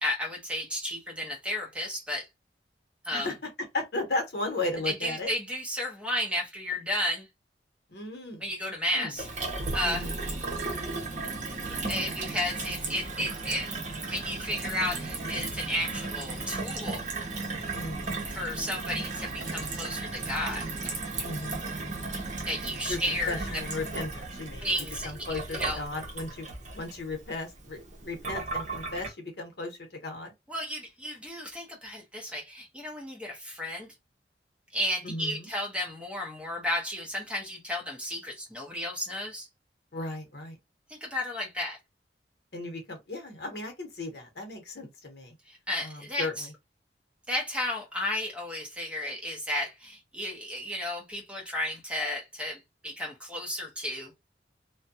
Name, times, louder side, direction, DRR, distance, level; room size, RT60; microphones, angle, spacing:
voice 1, 0.0-2.3 3.0-3.3 4.8-7.3 8.4-9.2 9.7-10.0 11.7-13.7 14.0-17.0 18.3-20.7 22.4-23.4 24.6-25.8 30.5-33.9 34.7-39.5 40.9-41.8 45.5-46.5 47.3-54.1, left 1 dB, 5° right, 0.8 m, -33 dB
voice 2, 3.7-5.3 7.9-8.4 8.9-9.1 9.8-10.2 17.7-18.2 21.2-22.2 22.9-26.5 26.7-27.8 28.0-30.3 35.0-35.5 39.9-40.6 42.5-45.3 45.8-46.5, left 2 dB, 65° left, 0.9 m, -36 dB
Gurgling / Water tap faucet / Sink (filling or washing), 9.2-29.1, right 3 dB, 45° right, 0.8 m, -35 dB
2.5 x 2.2 x 2.6 m
head